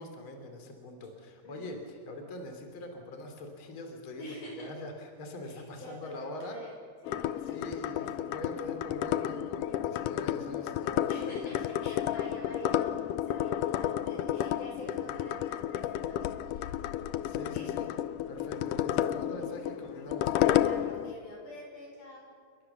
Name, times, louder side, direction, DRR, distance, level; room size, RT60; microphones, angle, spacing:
voice 1, 0.0-1.8 2.1-6.6 7.5-11.5 15.1-15.3 17.2-17.9 18.3-20.7, left 2 dB, 35° left, 4 dB, 3.7 m, -43 dB
voice 2, 1.4-1.7 4.2-4.7 5.4-6.7 7.0-8.1 11.0-16.7 17.4-17.7 20.5-22.3, left 1 dB, 50° left, -1 dB, 7.1 m, -46 dB
sound 1, 7.0-21.1, left 12 dB, 85° left, 1.8 m, -31 dB
30.0 x 22.0 x 7.2 m, 2.1 s
omnidirectional pair, 4.6 m